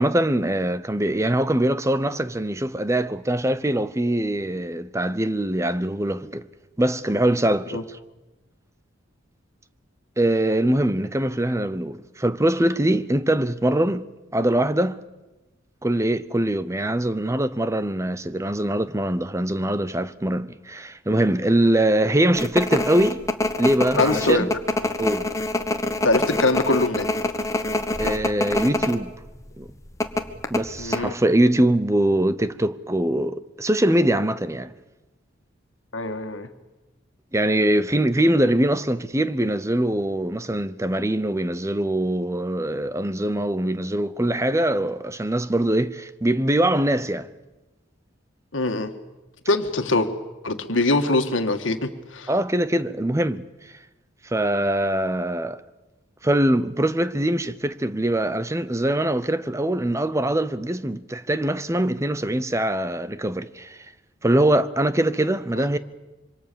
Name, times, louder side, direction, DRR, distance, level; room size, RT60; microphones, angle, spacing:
voice 1, 0.0-6.4 6.8-7.8 10.2-14.1 14.3-15.0 15.8-23.2 23.6-24.5 25.0-25.3 28.0-29.1 29.6-29.7 30.5-34.7 37.3-47.3 52.3-53.5 54.2-55.6 56.2-63.8 64.2-65.8, right 1 dB, 15° right, 0.8 m, -23 dB
sound 1, 22.4-29.0 29.3-29.4 30.0-31.0, left 2 dB, 15° left, 1.3 m, -25 dB
voice 2, 24.0-24.5 26.0-27.1 30.8-31.1 35.9-36.5 48.5-48.9 49.5-50.1 50.4-52.3 65.6-65.7, left 2 dB, 75° left, 1.9 m, -23 dB
26.5 x 24.5 x 7.0 m
head